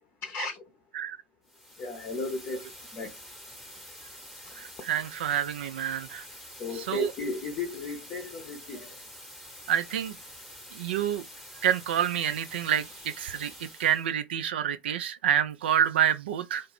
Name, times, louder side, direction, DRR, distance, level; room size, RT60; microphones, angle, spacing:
voice 1, 0.2-0.6 1.8-3.2 6.6-9.0, left 3 dB, 35° left, 0.6 m, -35 dB
sound 1, 1.4-14.1, equal, ahead, 0.9 m, -47 dB
voice 2, 4.6-6.3 6.7-7.1 9.7-10.2 10.7-11.2 11.6-16.7, right 10 dB, 75° right, 0.4 m, -28 dB
2.3 x 2.0 x 3.3 m
hypercardioid pair, 95°, 6 cm